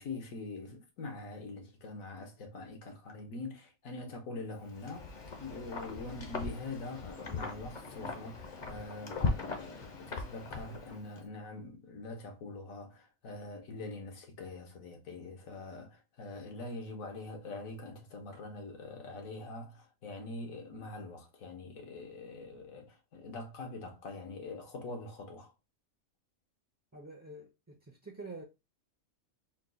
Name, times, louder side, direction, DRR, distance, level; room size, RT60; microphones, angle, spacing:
voice 1, 0.0-25.5, left 2 dB, 75° left, 1.5 m, -44 dB
Wind, 4.7-11.2, left 3 dB, 40° left, 0.8 m, -39 dB
voice 2, 26.9-28.4, right 3 dB, 20° right, 0.5 m, -47 dB
4.4 x 2.3 x 3.9 m
omnidirectional pair, 1.4 m